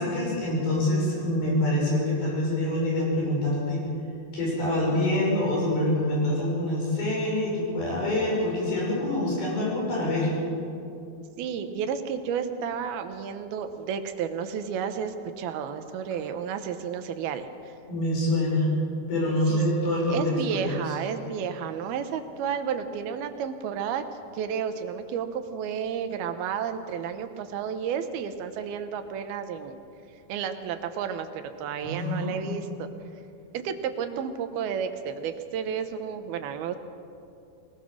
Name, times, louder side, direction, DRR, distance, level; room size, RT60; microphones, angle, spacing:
voice 1, 0.0-3.9 4.3-10.3 17.9-18.7 19.1-20.9 31.8-32.5, left 1 dB, 70° left, -4 dB, 8.2 m, -26 dB
voice 2, 11.4-17.7 19.5-19.6 20.1-24.0 24.3-29.8 30.3-31.3 31.6-32.9 33.5-36.8, right 7 dB, 80° right, 8 dB, 2.9 m, -32 dB
22.0 x 20.0 x 6.3 m, 2.5 s
omnidirectional pair, 4.4 m